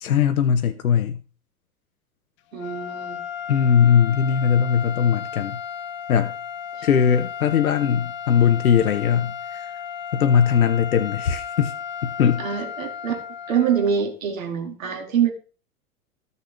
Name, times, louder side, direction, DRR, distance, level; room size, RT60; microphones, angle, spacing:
voice 1, 0.0-1.2 3.5-5.6 6.1-6.3 6.8-9.7 10.1-11.7 12.0-12.5, left 7 dB, 75° left, 0.7 m, -20 dB
sound 1, 2.5-14.1, left 8 dB, 25° left, 0.7 m, -34 dB
voice 2, 2.5-3.2 6.8-6.9 12.4-15.3, right 8 dB, 65° right, 2.3 m, -25 dB
13.5 x 6.6 x 3.4 m
figure-of-eight pair, 90°, 43 cm